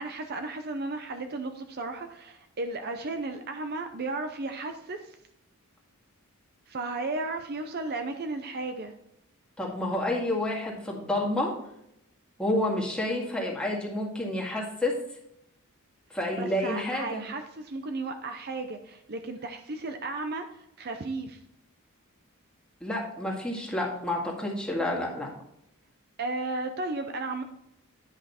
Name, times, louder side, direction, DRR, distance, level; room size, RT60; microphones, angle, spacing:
voice 1, 0.0-5.1 6.7-8.9 16.4-21.4 26.2-27.4, right 3 dB, 45° right, 6 dB, 0.6 m, -34 dB
voice 2, 9.6-11.6 12.4-15.0 16.1-17.2 22.8-25.3, left 1 dB, 5° left, -3 dB, 1.9 m, -29 dB
9.9 x 5.6 x 4.2 m, 0.79 s
head